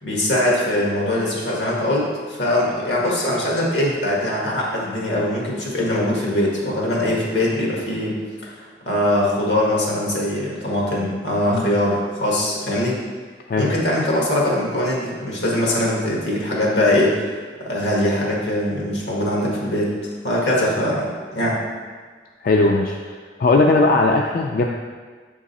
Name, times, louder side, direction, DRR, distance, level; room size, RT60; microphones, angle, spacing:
voice 1, 0.0-13.0 13.6-17.2 17.6-19.9 20.2-21.6, left 1 dB, 85° left, -4 dB, 1.5 m, -22 dB
voice 2, 22.4-24.7, left 3 dB, 50° left, 1 dB, 0.3 m, -18 dB
6.6 x 3.7 x 4.0 m, 1.5 s
head